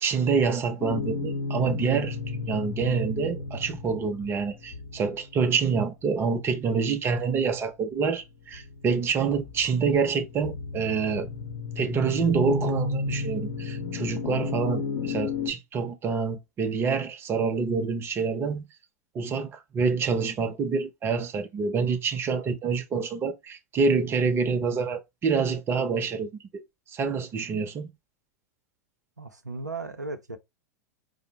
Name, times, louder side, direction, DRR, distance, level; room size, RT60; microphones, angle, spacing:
voice 1, 0.0-2.2 2.5-11.3 11.8-18.6 19.1-26.3 26.9-27.9, right 5 dB, 25° right, 0.7 m, -27 dB
sound 1, 0.8-6.0 8.0-15.5, left 4 dB, 60° left, 0.7 m, -33 dB
voice 2, 29.2-30.4, right 3 dB, 90° right, 0.5 m, -36 dB
5.0 x 2.1 x 2.9 m
figure-of-eight pair, 90°, 9 cm